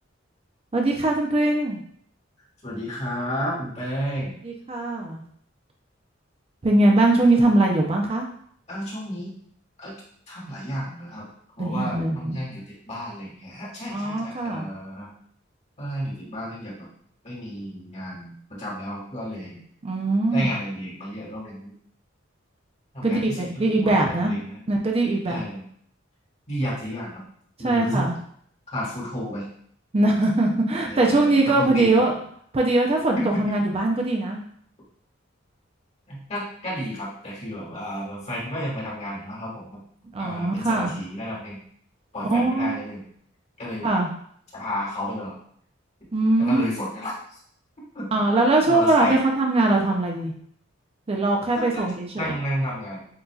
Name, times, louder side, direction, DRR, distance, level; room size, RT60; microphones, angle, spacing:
voice 1, 0.7-1.8 4.4-5.2 6.6-8.3 11.6-12.4 13.9-14.7 19.8-20.5 23.0-24.3 24.7-25.4 27.6-28.1 29.9-32.1 32.5-34.4 40.1-40.9 42.3-42.8 43.8-44.1 46.1-46.7 48.1-50.3 51.1-52.3, right 2 dB, 30° right, 1 dB, 0.5 m, -21 dB
voice 2, 2.6-4.4 8.7-9.3 9.8-10.0 10.3-11.3 11.6-15.1 15.8-16.9 17.2-19.6 20.3-21.7 22.9-24.6 25.3-25.6 26.5-27.2 27.6-28.1 28.7-29.5 30.8-32.0 33.1-33.4 36.1-39.8 40.2-41.6 42.1-43.0 43.6-44.0 44.5-45.4 46.4-47.4 47.9-48.1 48.3-49.2 51.5-51.8 52.1-53.1, equal, 35° left, -5 dB, 1.7 m, -32 dB
7.4 x 2.7 x 2.3 m, 0.64 s
head